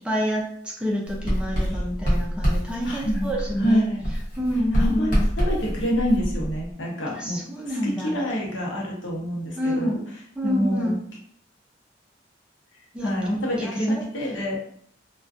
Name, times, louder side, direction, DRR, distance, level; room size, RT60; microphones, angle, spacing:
voice 1, 0.1-3.8 4.4-5.3 7.1-8.2 9.6-10.0 10.4-11.0 12.9-13.1 13.6-14.0, equal, 5° right, -2 dB, 0.3 m, -27 dB
Writing, 1.1-3.7 4.0-6.7, equal, 45° left, 0.9 m, -26 dB
voice 2, 2.8-3.3 3.6-4.0 4.7-5.1 5.4-10.0 10.4-11.0 13.0-14.6, equal, 75° left, -2 dB, 0.7 m, -27 dB
2.4 x 2.2 x 2.4 m, 0.63 s
head